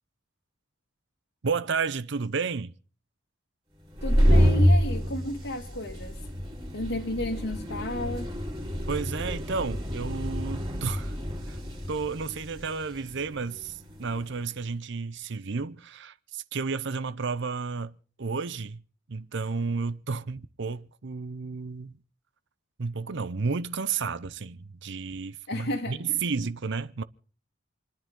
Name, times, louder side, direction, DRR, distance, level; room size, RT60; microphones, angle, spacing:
voice 1, 1.4-2.7 8.9-11.1 11.5-11.6 11.9-18.8 19.1-21.9 22.8-27.0, right 5 dB, 60° right, 0.7 m, -32 dB
sound 1, 3.8-14.3, equal, 20° right, 3.0 m, -27 dB
voice 2, 4.0-6.2 6.7-8.3 25.5-26.2, left 1 dB, 60° left, 2.0 m, -33 dB
28.5 x 10.5 x 3.7 m
head